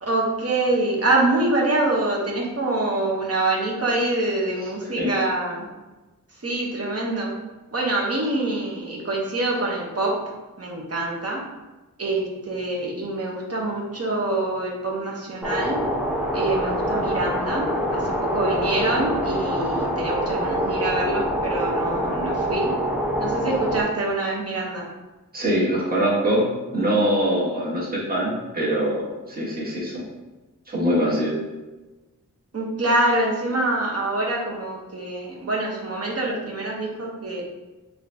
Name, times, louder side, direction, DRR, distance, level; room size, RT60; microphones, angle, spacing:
voice 1, 0.0-5.7 6.4-7.3 7.7-10.2 10.6-11.4 12.0-15.8 16.3-22.7 23.2-24.8 32.5-37.4, right 2 dB, 45° right, -3 dB, 0.8 m, -25 dB
sound 1, 15.4-23.8, equal, 5° right, 0.6 m, -25 dB
voice 2, 25.3-30.0 30.7-31.4, right 1 dB, 25° right, -6 dB, 1.1 m, -23 dB
3.7 x 2.6 x 3.3 m, 1.2 s
wide cardioid pair, 100°, 34 cm